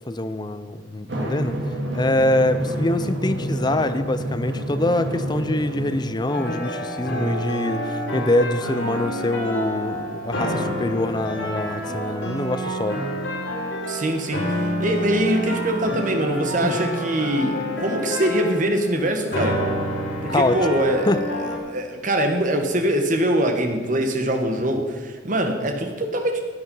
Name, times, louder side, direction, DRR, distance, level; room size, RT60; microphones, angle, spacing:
voice 1, 0.1-1.6 1.9-13.0 16.6-16.8 20.3-20.6 21.1-21.2, left 1 dB, 20° left, 11 dB, 0.5 m, -24 dB
Drum, 1.1-6.1, equal, 65° right, 2.3 m, -28 dB
sound 1, 6.3-21.6, equal, 80° left, 4.8 m, -28 dB
voice 2, 13.9-19.6 20.2-21.1 21.6-26.4, right 1 dB, 40° right, 4 dB, 1.5 m, -23 dB
16.0 x 9.4 x 5.5 m, 1.5 s
head